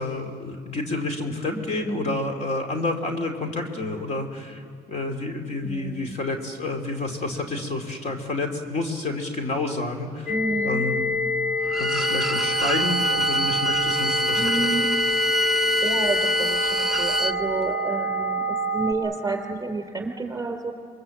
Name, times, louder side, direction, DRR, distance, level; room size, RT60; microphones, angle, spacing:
voice 1, 0.0-10.3 10.6-11.0 11.7-14.7, left 2 dB, 40° left, 4 dB, 2.8 m, -29 dB
voice 2, 5.6-6.2 10.3-10.8 14.3-14.9 15.8-20.7, right 3 dB, 20° right, 4 dB, 3.9 m, -30 dB
sound 1, 10.3-18.9, left 1 dB, 75° left, 2.7 m, -27 dB
Bowed string instrument, 11.7-17.4, equal, ahead, 0.6 m, -25 dB
26.5 x 22.5 x 7.8 m, 2.3 s
cardioid pair, 110°, 17 cm